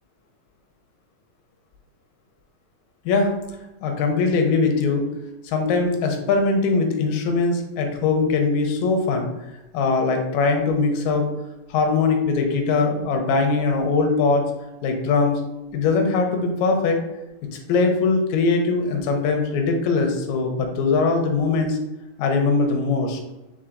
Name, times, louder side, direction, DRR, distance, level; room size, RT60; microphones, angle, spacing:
voice 1, 3.8-5.1 5.4-9.3 9.7-11.3 11.7-14.5 14.8-15.4 15.7-17.0 17.7-21.8 22.2-23.2, left 4 dB, 75° left, 3 dB, 2.0 m, -21 dB
5.6 x 3.7 x 2.5 m, 0.97 s
omnidirectional pair, 3.6 m